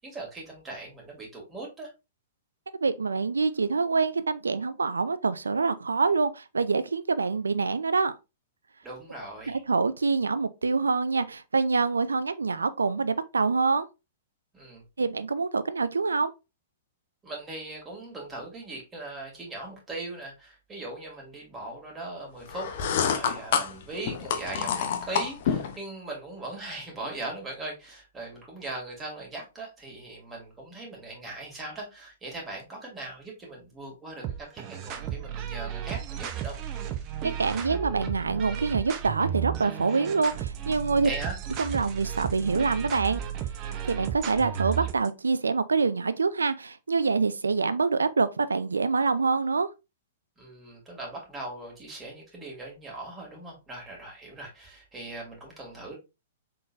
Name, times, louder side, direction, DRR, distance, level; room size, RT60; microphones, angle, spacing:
voice 1, 0.0-1.9 8.8-9.6 14.5-14.8 17.2-22.7 23.1-36.6 41.0-41.4 50.4-55.9, right 2 dB, 20° right, 2.3 m, -39 dB
voice 2, 2.8-8.1 9.5-13.9 15.0-16.3 37.4-41.1 41.6-43.2 43.9-49.7, right 4 dB, 85° right, 0.4 m, -26 dB
sound 1, 22.5-25.8, left 7 dB, 55° left, 0.7 m, -28 dB
sound 2, 34.2-45.1, right 10 dB, 35° right, 0.7 m, -34 dB
3.9 x 3.8 x 2.5 m
hypercardioid pair, 115°, 0 cm